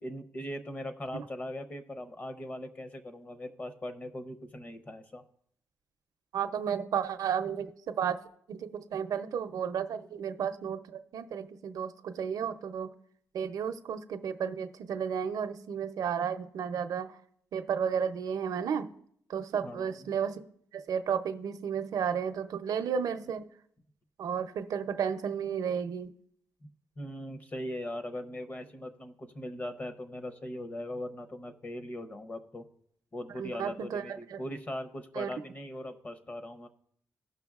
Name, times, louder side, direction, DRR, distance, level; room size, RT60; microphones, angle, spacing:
voice 1, 0.0-5.2 19.6-20.1 27.0-32.6 33.1-36.7, left 1 dB, 25° left, 8 dB, 0.6 m, -40 dB
voice 2, 6.3-8.2 8.5-12.9 13.3-17.2 17.5-18.9 19.3-20.4 20.7-23.5 24.2-26.1 33.4-34.4 35.2-35.3, right 7 dB, 75° right, 10 dB, 0.5 m, -33 dB
16.5 x 5.8 x 2.4 m, 0.67 s
wide cardioid pair, 145°, 6 cm